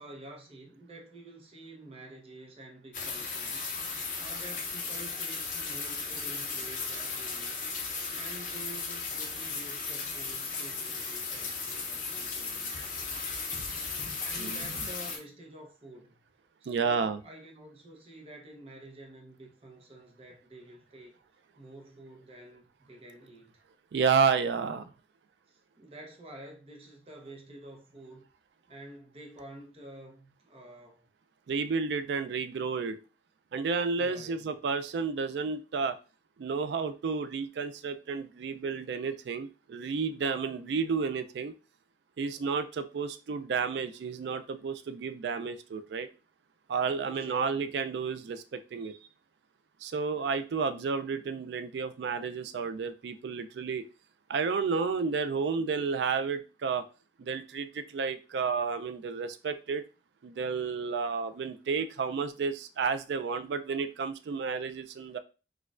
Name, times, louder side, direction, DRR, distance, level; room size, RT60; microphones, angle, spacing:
voice 1, 0.0-7.6 8.1-13.3 14.2-16.3 16.6-21.1 21.6-23.6 24.5-24.7 25.5-28.2 28.7-31.1 34.0-34.6 47.0-47.7, right 1 dB, 30° right, 0.7 m, -49 dB
sound 1, 2.9-15.2, left 4 dB, 45° left, 0.7 m, -36 dB
voice 2, 16.7-17.2 23.9-24.8 31.5-33.0 33.5-36.0 36.4-41.5 42.2-46.1 46.7-49.0 49.8-53.8 54.3-56.9 57.2-59.8 60.2-65.2, right 5 dB, 70° right, 0.3 m, -31 dB
4.3 x 2.3 x 2.4 m
head